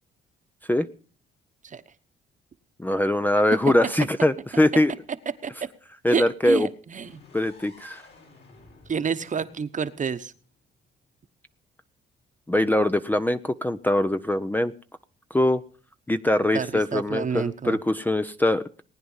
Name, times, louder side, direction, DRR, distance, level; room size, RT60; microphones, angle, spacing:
voice 1, 2.8-4.9 6.0-6.7 7.3-8.0 12.5-14.7 15.3-15.6 16.1-18.6, left 1 dB, 10° left, 10 dB, 0.6 m, -22 dB
voice 2, 6.1-7.2 8.9-10.3 16.5-17.8, right 6 dB, 40° right, 11 dB, 1.1 m, -29 dB
sound 1, 6.9-10.8, left 3 dB, 60° left, 5.1 m, -54 dB
19.0 x 9.5 x 5.5 m, 0.41 s
cardioid pair, 90°, 20 cm